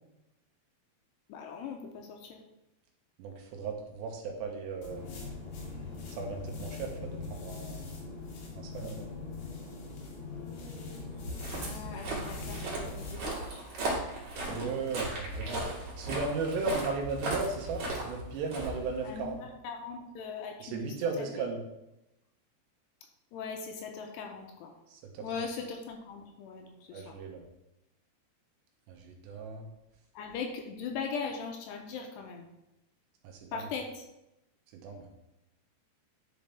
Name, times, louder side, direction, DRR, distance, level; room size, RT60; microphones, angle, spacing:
voice 1, 1.3-2.4 11.5-13.6 19.0-21.2 23.3-24.7 25.2-27.1 30.1-32.5 33.5-34.1, left 5 dB, 80° left, 3 dB, 2.7 m, -40 dB
voice 2, 3.2-5.1 6.1-8.0 8.5-9.1 14.5-15.7 16.0-19.4 20.6-21.6 24.9-25.3 26.9-27.4 28.9-29.7 33.2-33.7 34.7-35.1, right 4 dB, 80° right, 2 dB, 3.0 m, -36 dB
sound 1, 4.8-13.2, left 3 dB, 65° left, 3.4 m, -42 dB
Walk footsteps, 11.1-19.4, right 2 dB, 50° right, 2.7 m, -37 dB
10.5 x 5.5 x 3.5 m, 0.90 s
omnidirectional pair, 5.2 m